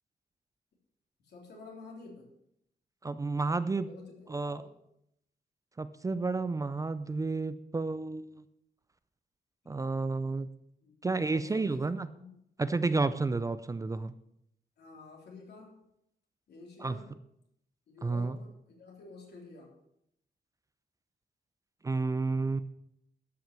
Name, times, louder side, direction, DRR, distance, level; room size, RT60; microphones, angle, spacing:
voice 1, 1.2-2.3 3.8-4.7 9.6-9.8 10.8-12.4 14.8-15.8 16.5-17.2 17.9-19.8, left 3 dB, 75° left, -1 dB, 3.6 m, -50 dB
voice 2, 3.0-3.9 4.3-4.6 5.8-8.3 9.7-10.5 11.0-12.1 12.6-14.1 16.8-16.9 18.0-18.4 21.8-22.6, right 3 dB, 20° right, 13 dB, 0.4 m, -31 dB
12.5 x 5.9 x 7.4 m, 0.76 s
wide cardioid pair, 165°, 17 cm